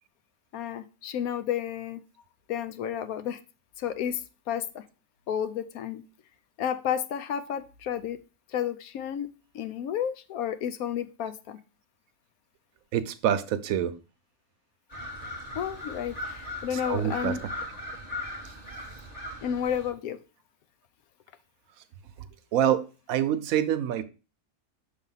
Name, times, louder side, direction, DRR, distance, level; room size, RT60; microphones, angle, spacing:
voice 1, 0.5-2.0 2.5-3.4 3.8-4.8 5.3-6.0 6.6-8.2 8.5-9.3 9.5-11.6 15.5-17.4 19.4-20.2, left 9 dB, 80° left, 11 dB, 1.1 m, -31 dB
voice 2, 12.9-13.9 16.7-17.4 22.5-24.0, right 10 dB, 75° right, 12 dB, 1.0 m, -26 dB
sound 1, 14.9-19.9, left 1 dB, 25° left, 1.6 m, -38 dB
6.4 x 3.5 x 5.4 m, 0.33 s
omnidirectional pair, 1.5 m